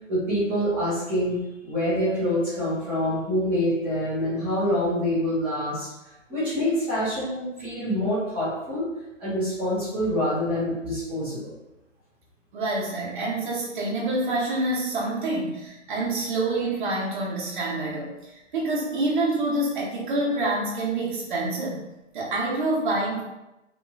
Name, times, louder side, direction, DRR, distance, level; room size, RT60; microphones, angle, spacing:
voice 1, 0.1-1.4 1.6-5.9 6.3-8.9 9.2-11.5, equal, 5° right, -15 dB, 0.6 m, -26 dB
voice 2, 12.5-18.1 18.5-21.8 22.1-23.2, right 2 dB, 40° right, -4 dB, 0.9 m, -27 dB
3.0 x 2.7 x 2.3 m, 0.96 s
hypercardioid pair, 155°, 37 cm